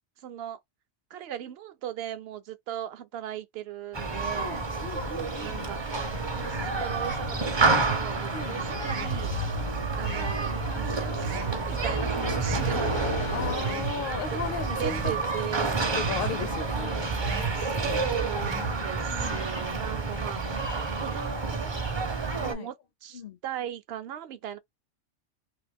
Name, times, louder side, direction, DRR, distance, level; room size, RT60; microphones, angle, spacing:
voice 1, 0.2-0.6 1.1-4.6 5.4-5.8 6.4-9.4 10.0-13.1 14.3-14.4 14.7-15.9 17.5-20.6 21.0-22.8 23.0-24.6, right 10 dB, 65° right, 0.8 m, -38 dB
Human group actions, 3.9-22.5, right 3 dB, 30° right, 0.5 m, -29 dB
voice 2, 4.4-5.7 8.3-8.6 13.3-15.1 15.5-17.1 18.6-19.4 22.4-22.7 23.1-23.4, left 6 dB, 60° left, 0.6 m, -36 dB
sound 1, 6.1-13.5, left 5 dB, 85° left, 1.1 m, -38 dB
sound 2, 7.7-8.1 8.9-9.2 10.0-10.4 11.2-11.6 12.4-12.8 13.6-14.0 14.8-15.2 16.0-16.4 17.2-17.6 18.4-18.8, right 8 dB, 90° right, 1.0 m, -34 dB
2.9 x 2.5 x 3.3 m
omnidirectional pair, 1.3 m